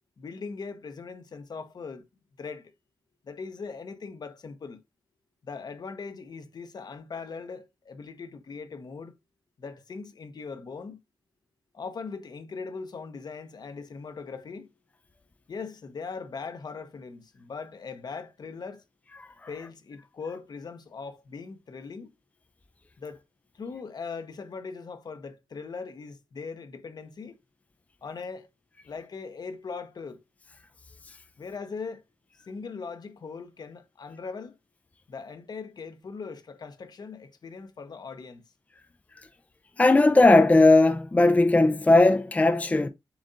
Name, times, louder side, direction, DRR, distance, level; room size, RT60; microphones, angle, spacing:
voice 1, 0.2-2.0 2.4-2.7 3.2-4.8 5.4-9.1 9.6-11.0 11.7-14.7 15.5-18.8 19.5-22.1 23.0-23.2 23.5-27.4 28.0-28.5 28.8-30.2 31.4-32.0 32.3-34.5 35.1-38.4, left 5 dB, 55° left, 0.9 m, -40 dB
voice 2, 39.8-42.9, left 2 dB, 20° left, 0.4 m, -18 dB
7.0 x 2.6 x 2.6 m
cardioid pair, 65°, 8 cm